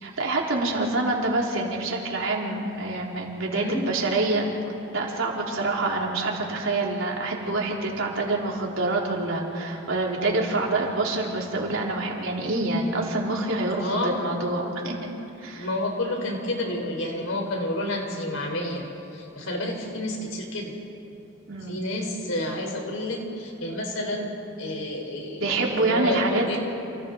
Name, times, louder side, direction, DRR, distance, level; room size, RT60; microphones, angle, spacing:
voice 1, 0.0-4.5 4.9-15.0 15.4-15.7 21.5-21.9 25.4-26.6, right 2 dB, 75° right, -2 dB, 3.8 m, -26 dB
voice 2, 3.5-3.9 13.8-14.3 15.5-18.8 19.1-20.7 21.7-24.3 24.6-26.6, left 1 dB, 85° left, 1 dB, 4.1 m, -30 dB
29.0 x 29.0 x 4.0 m, 2.8 s
head